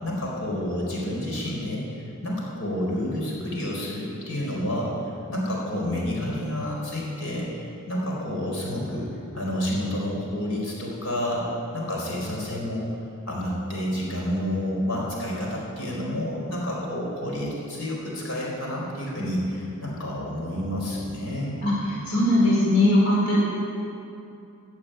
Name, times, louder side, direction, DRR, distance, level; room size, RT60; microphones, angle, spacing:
voice 1, 0.0-9.1 9.3-11.4 11.7-12.9 13.2-21.6, left 1 dB, 70° left, -3 dB, 4.5 m, -29 dB
voice 2, 22.1-23.4, left 1 dB, 85° left, -6 dB, 4.7 m, -19 dB
15.5 x 8.6 x 9.2 m, 2.7 s
head